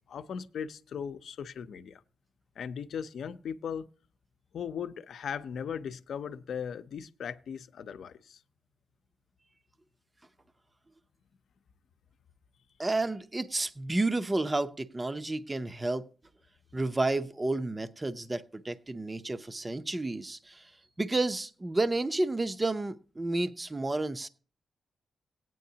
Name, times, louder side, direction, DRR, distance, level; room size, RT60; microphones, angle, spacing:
voice 1, 0.1-2.0 2.6-3.9 4.5-8.4, left 7 dB, 70° left, 0.7 m, -38 dB
voice 2, 12.8-16.1 16.7-20.7 21.0-24.3, right 2 dB, 15° right, 0.6 m, -31 dB
17.5 x 9.2 x 2.8 m
wide cardioid pair, 130°, 0 cm